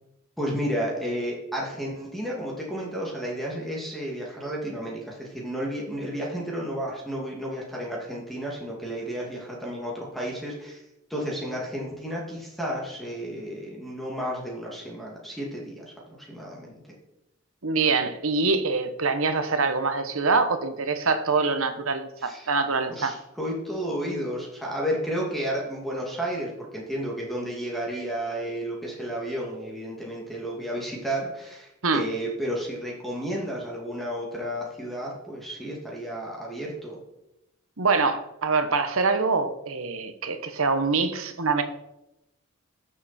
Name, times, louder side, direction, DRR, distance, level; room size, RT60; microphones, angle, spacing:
voice 1, 0.4-10.8 11.1-15.9 16.2-16.8 22.2-22.5 22.9-37.0, equal, ahead, -3 dB, 2.4 m, -32 dB
voice 2, 17.6-23.1 31.8-32.0 37.8-41.6, right 4 dB, 75° right, 9 dB, 1.1 m, -24 dB
14.0 x 7.0 x 4.3 m, 0.89 s
head